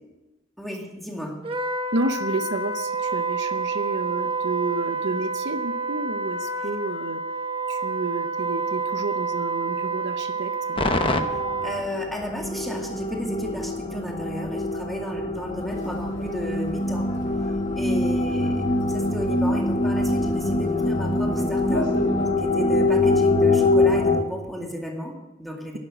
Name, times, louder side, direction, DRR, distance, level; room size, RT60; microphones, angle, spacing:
voice 1, 0.6-1.4 11.6-17.1 17.8-21.9 22.4-25.8, equal, ahead, 0 dB, 2.2 m, -33 dB
Wind instrument woodwind instrument, 1.4-11.9, right 4 dB, 30° right, 1.2 m, -28 dB
voice 2, 1.9-7.2 7.7-10.8, right 2 dB, 60° right, 9 dB, 0.8 m, -30 dB
sound 1, 10.8-24.2, left 2 dB, 25° left, 0.9 m, -24 dB
sound 2, 15.6-22.3, left 1 dB, 70° left, 2.6 m, -38 dB
11.5 x 11.0 x 7.7 m, 1.1 s
head